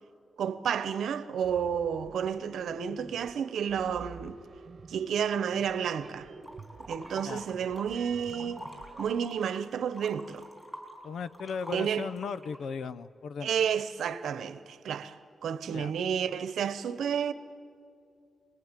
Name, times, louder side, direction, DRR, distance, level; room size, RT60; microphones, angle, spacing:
voice 1, 0.4-4.4 4.9-6.3 6.9-8.6 9.0-10.5 11.7-12.1 13.4-15.2 15.4-17.3, right 8 dB, 85° right, 1.0 m, -31 dB
sound 1, 1.4-9.2, right 5 dB, 40° right, 1.2 m, -50 dB
sound 2, 6.4-7.9 8.2-12.6, equal, 5° left, 4.2 m, -46 dB
voice 2, 11.0-13.5 15.7-15.9, left 6 dB, 70° left, 0.7 m, -37 dB
28.0 x 20.0 x 9.1 m
wide cardioid pair, 145°, 0 cm